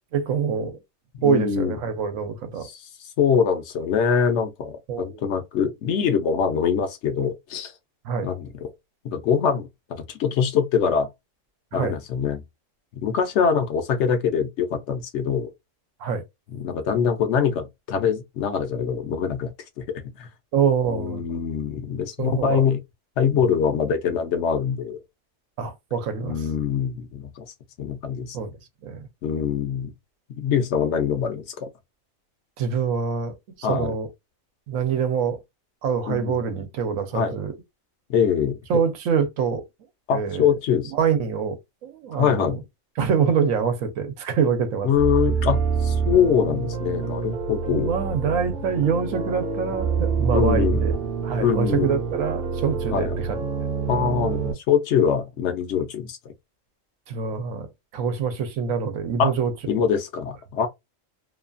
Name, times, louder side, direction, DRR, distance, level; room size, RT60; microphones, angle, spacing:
voice 1, 0.1-0.8 1.2-2.7 4.9-5.2 8.0-8.3 11.7-12.0 16.0-16.2 20.5-21.2 22.2-22.6 23.3-23.4 25.6-26.5 28.3-28.5 28.8-29.0 32.6-34.1 34.7-35.4 35.8-37.5 38.7-39.6 40.1-40.5 40.9-41.6 41.8-42.6 43.0-44.9 47.7-50.9 51.2-53.4 57.1-57.7 57.9-59.8, right 6 dB, 90° right, 1.1 m, -25 dB
voice 2, 1.2-1.8 2.6-2.8 3.2-7.7 8.2-8.7 9.0-11.1 11.7-12.4 13.0-15.5 16.5-19.5 19.8-20.3 20.9-22.8 23.2-25.0 26.2-27.5 27.8-28.4 29.2-29.9 30.4-31.7 33.6-33.9 36.1-36.4 37.1-37.4 38.1-38.6 40.1-40.9 42.2-42.6 44.8-47.9 50.3-50.8 51.4-52.0 52.9-53.2 53.9-56.2 59.2-59.3 59.7-60.7, left 7 dB, 65° left, 0.9 m, -23 dB
sound 1, 44.9-54.5, right 5 dB, 65° right, 0.9 m, -26 dB
2.8 x 2.3 x 2.4 m
omnidirectional pair, 1.3 m